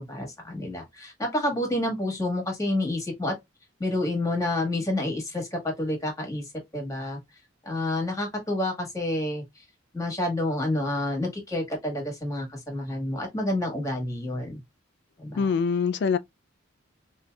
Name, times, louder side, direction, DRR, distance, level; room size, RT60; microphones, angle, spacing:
voice 1, 0.0-3.3 3.8-7.2 7.6-9.6 9.9-14.6 15.2-15.6, left 1 dB, 15° left, 1.4 m, -29 dB
voice 2, 15.4-16.2, left 5 dB, 55° left, 0.3 m, -24 dB
5.1 x 2.7 x 2.3 m
head